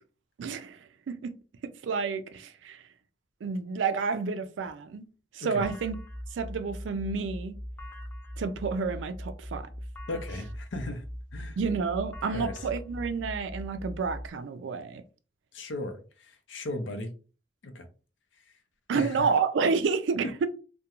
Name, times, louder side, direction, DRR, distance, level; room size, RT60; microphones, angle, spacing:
voice 1, 0.4-0.8 1.1-1.3 1.8-2.8 3.4-5.0 5.3-6.0 6.3-7.6 8.4-9.7 11.6-15.0 18.9-20.5, right 5 dB, 85° right, 0.3 m, -29 dB
sound 1, 5.6-14.3, equal, 10° left, 0.3 m, -40 dB
voice 2, 10.1-11.0 11.3-11.6 12.3-12.6 15.5-17.1 17.6-17.9 18.9-19.3 20.2-20.5, left 1 dB, 90° left, 0.6 m, -36 dB
2.3 x 2.1 x 2.8 m
head